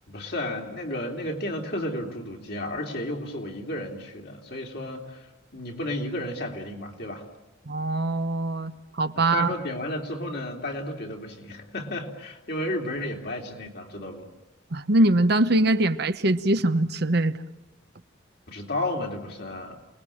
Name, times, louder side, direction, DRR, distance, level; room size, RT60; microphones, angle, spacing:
voice 1, 0.1-5.3 5.5-7.3 9.1-14.3 18.5-19.8, left 1 dB, 55° left, 1 dB, 3.6 m, -32 dB
voice 2, 7.7-8.7 9.0-9.5 14.7-17.4, right 2 dB, 55° right, 10 dB, 1.0 m, -22 dB
29.0 x 20.5 x 8.8 m, 0.99 s
head